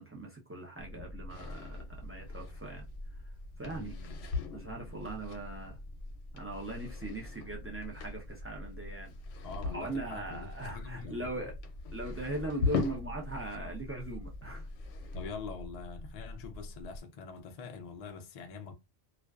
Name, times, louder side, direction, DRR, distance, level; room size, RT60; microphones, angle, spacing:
voice 1, 0.0-2.9 3.6-3.9 4.5-5.8 6.3-9.1 9.7-11.5 11.9-14.7, right 2 dB, 20° right, 0.3 m, -40 dB
sound 1, 0.8-17.0, left 1 dB, 75° right, 1.0 m, -45 dB
sound 2, 1.3-13.6 13.9-15.5, left 5 dB, 85° left, 0.9 m, -41 dB
voice 2, 3.7-5.1 9.4-11.5 15.1-18.7, left 5 dB, 60° left, 0.4 m, -45 dB
2.4 x 2.2 x 2.2 m
omnidirectional pair, 1.2 m